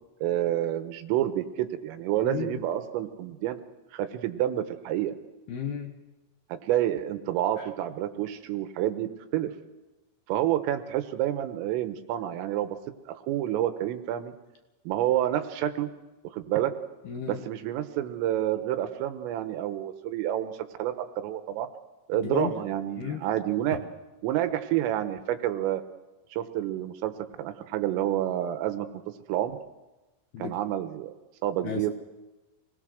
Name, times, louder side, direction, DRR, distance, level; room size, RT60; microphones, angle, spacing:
voice 1, 0.2-3.6 3.9-5.1 6.5-9.5 10.3-12.8 13.1-14.3 14.9-15.9 16.3-16.7 17.3-20.5 20.8-21.7 22.1-23.8 24.2-25.8 26.3-27.1 27.4-28.9 29.3-29.6 30.4-31.1 31.4-31.9, right 12 dB, 80° right, 9 dB, 3.7 m, -28 dB
voice 2, 2.2-2.6 5.5-5.9 7.6-7.7 17.0-17.4 22.1-22.5 23.0-23.2 30.3-30.6 31.6-31.9, left 7 dB, 65° left, 4 dB, 2.6 m, -33 dB
26.5 x 19.5 x 6.4 m, 1.1 s
omnidirectional pair, 6.0 m